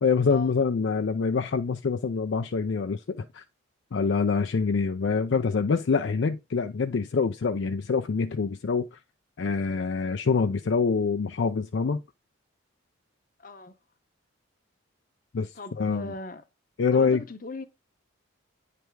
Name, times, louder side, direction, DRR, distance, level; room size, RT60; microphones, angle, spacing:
voice 1, 0.0-3.4 3.9-9.0 9.4-12.0 15.3-16.1 16.8-17.2, left 5 dB, 60° left, 0.4 m, -25 dB
voice 2, 13.4-13.8 15.5-16.4 16.9-17.6, left 2 dB, 40° left, 0.8 m, -38 dB
9.1 x 3.4 x 4.6 m
head